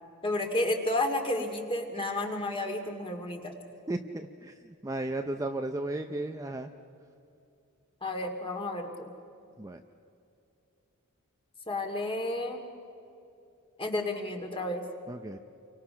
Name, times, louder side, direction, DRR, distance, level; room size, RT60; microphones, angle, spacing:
voice 1, 0.2-3.4 8.0-9.1 11.7-12.6 13.8-14.8, left 1 dB, 25° left, 4 dB, 2.4 m, -31 dB
voice 2, 3.9-4.5 4.8-6.7 9.6-9.8 15.1-15.4, right 2 dB, 15° right, 5 dB, 0.6 m, -34 dB
29.5 x 24.5 x 5.8 m, 2.6 s
head